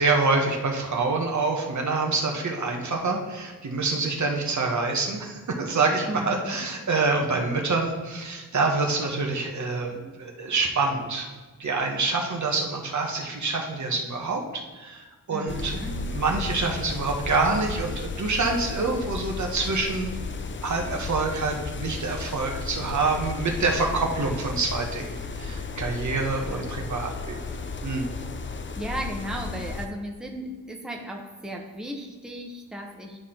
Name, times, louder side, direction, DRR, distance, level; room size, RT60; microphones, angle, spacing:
voice 1, 0.0-11.3 11.6-15.8 16.1-20.1 20.6-28.1, right 3 dB, 50° right, 1 dB, 1.2 m, -26 dB
voice 2, 6.1-6.6 15.3-16.0 26.4-26.6 28.3-28.4 28.8-33.2, equal, ahead, 1 dB, 1.1 m, -35 dB
sound 1, 15.5-29.9, left 4 dB, 35° left, 0.6 m, -34 dB
10.5 x 4.2 x 3.8 m, 1.3 s
cardioid pair, 60°, 36 cm